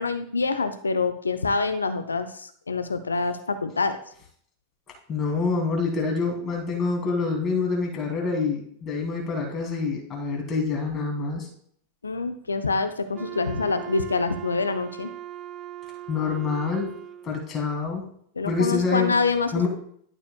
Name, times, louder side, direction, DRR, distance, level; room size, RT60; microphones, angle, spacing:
voice 1, 0.0-4.0 12.0-15.1 18.4-19.7, left 4 dB, 75° left, 9 dB, 0.6 m, -26 dB
voice 2, 5.1-11.5 16.1-17.0 17.2-18.0 18.4-19.1 19.5-19.7, left 4 dB, 30° left, 0 dB, 2.6 m, -26 dB
Wind instrument woodwind instrument, 13.1-17.4, right 12 dB, 25° right, 0.5 m, -39 dB
12.0 x 6.4 x 2.3 m, 0.63 s
figure-of-eight pair, 90°, 0 cm